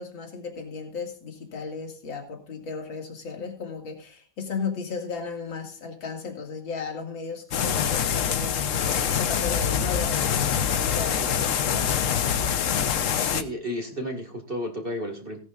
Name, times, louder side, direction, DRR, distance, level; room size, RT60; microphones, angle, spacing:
voice 1, 0.0-12.0, left 5 dB, 85° left, 3 dB, 2.9 m, -35 dB
sound 1, 7.5-13.4, left 8 dB, 55° left, 0.9 m, -25 dB
voice 2, 13.3-15.4, equal, 30° right, 3 dB, 2.1 m, -32 dB
18.0 x 10.5 x 2.5 m, 0.37 s
omnidirectional pair, 2.0 m